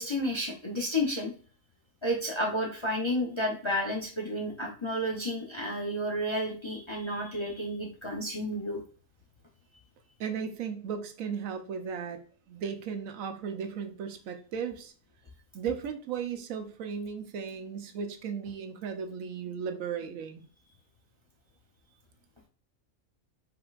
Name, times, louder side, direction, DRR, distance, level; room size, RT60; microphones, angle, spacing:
voice 1, 0.0-1.3 2.0-8.8, equal, 30° left, -1 dB, 0.5 m, -31 dB
voice 2, 10.2-12.2 12.5-14.9 15.5-20.4, right 7 dB, 85° right, 7 dB, 1.1 m, -36 dB
5.1 x 3.8 x 2.4 m, 0.42 s
omnidirectional pair, 1.4 m